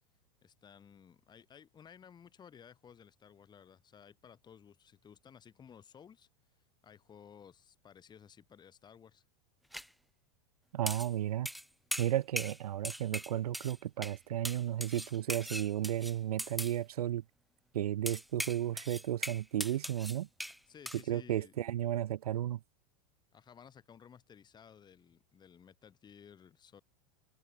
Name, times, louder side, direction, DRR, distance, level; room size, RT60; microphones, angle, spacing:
voice 1, 0.4-6.3 6.8-9.2 20.7-21.5 23.3-26.8, left 7 dB, 25° left, 2.7 m, -56 dB
sound 1, 9.7-9.9 10.9-11.1 11.5-11.7 11.9-12.6 12.8-13.8 14.0-14.2 14.4-16.8 18.1-20.6 20.9-21.0, equal, ahead, 0.8 m, -40 dB
voice 2, 10.7-11.5 12.0-17.2 17.7-20.3 21.1-22.6, right 12 dB, 90° right, 1.6 m, -33 dB
supercardioid pair, 125°, 19 cm